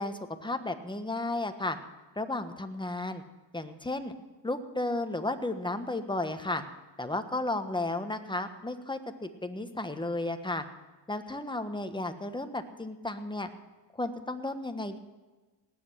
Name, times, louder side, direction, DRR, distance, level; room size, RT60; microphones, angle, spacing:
voice 1, 0.0-1.8 2.2-3.2 3.5-4.1 4.4-6.6 7.0-10.6 11.1-13.5 14.0-15.0, left 2 dB, 10° left, 8 dB, 1.2 m, -33 dB
18.5 x 7.9 x 6.2 m, 1.2 s
cardioid pair, 85°, 46 cm